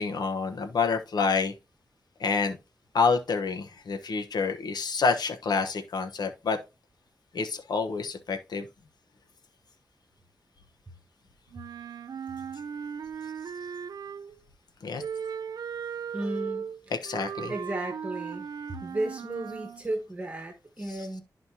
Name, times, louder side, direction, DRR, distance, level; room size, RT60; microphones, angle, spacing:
voice 1, 0.0-1.5 2.2-2.6 2.9-6.6 7.3-8.7 14.8-15.0 16.9-17.5, left 4 dB, 90° left, 1.0 m, -28 dB
Wind instrument woodwind instrument, 11.5-14.4 15.0-19.8, right 7 dB, 70° right, 0.5 m, -37 dB
voice 2, 16.1-16.7 17.5-21.2, right 1 dB, 20° right, 1.3 m, -34 dB
12.5 x 4.3 x 2.8 m
wide cardioid pair, 180°, 7 cm